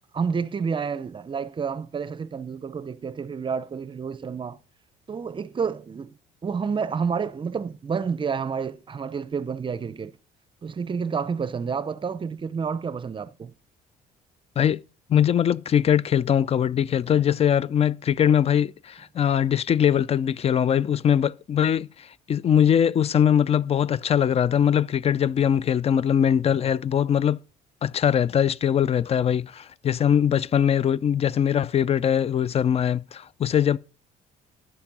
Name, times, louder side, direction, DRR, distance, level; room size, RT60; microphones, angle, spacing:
voice 1, 0.1-4.6 5.1-6.2 6.4-10.2 10.6-13.5, right 6 dB, 30° right, 0.6 m, -29 dB
voice 2, 15.1-27.4 27.8-33.8, left 9 dB, 35° left, 0.5 m, -21 dB
11.5 x 7.3 x 5.4 m
cardioid pair, 110°, 17 cm